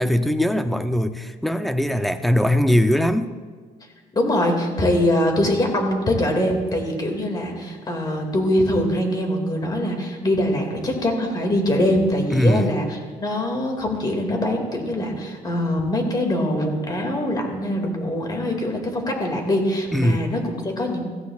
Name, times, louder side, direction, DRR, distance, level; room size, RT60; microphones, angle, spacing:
voice 1, 0.0-3.3 12.3-12.7 19.9-20.3, left 1 dB, ahead, 9 dB, 0.5 m, -20 dB
voice 2, 4.1-21.0, left 1 dB, 25° left, 2 dB, 2.2 m, -23 dB
16.5 x 15.0 x 2.4 m, 1.5 s
cardioid pair, 130°, 14 cm